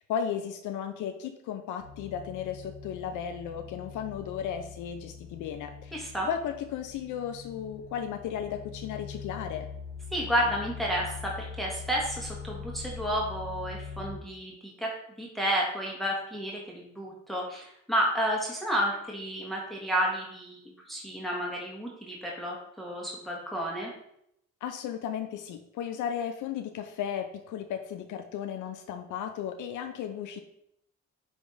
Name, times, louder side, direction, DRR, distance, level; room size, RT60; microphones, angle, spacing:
voice 1, 0.1-5.9 6.3-9.7 24.6-30.4, left 8 dB, 85° left, 7 dB, 0.7 m, -35 dB
sound 1, 1.8-14.2, left 6 dB, 35° left, 2.1 m, -43 dB
voice 2, 5.9-6.3 10.1-14.9 15.2-23.9, equal, ahead, -3 dB, 1.8 m, -31 dB
10.0 x 3.4 x 4.0 m, 0.75 s
cardioid pair, 90°, 30 cm